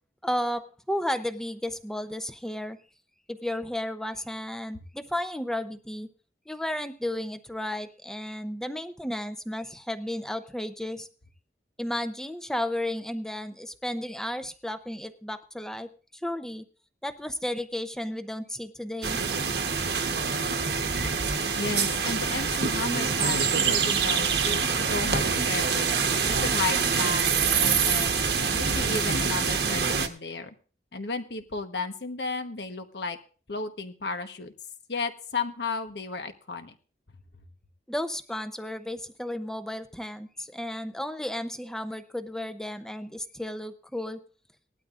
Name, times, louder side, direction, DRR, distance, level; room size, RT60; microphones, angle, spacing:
voice 1, 0.2-2.8 3.3-6.1 6.5-11.1 11.8-15.9 16.2-16.6 17.0-19.3 37.9-44.2, left 1 dB, 5° left, 9 dB, 0.7 m, -33 dB
sound 1, 19.0-30.1, right 5 dB, 70° right, 1.2 m, -25 dB
voice 2, 21.6-25.9 26.3-27.2 27.5-28.1 28.4-30.5 30.9-33.2 33.5-34.5 34.9-36.8, left 4 dB, 70° left, 7 dB, 1.2 m, -33 dB
19.0 x 12.0 x 2.5 m, 0.37 s
head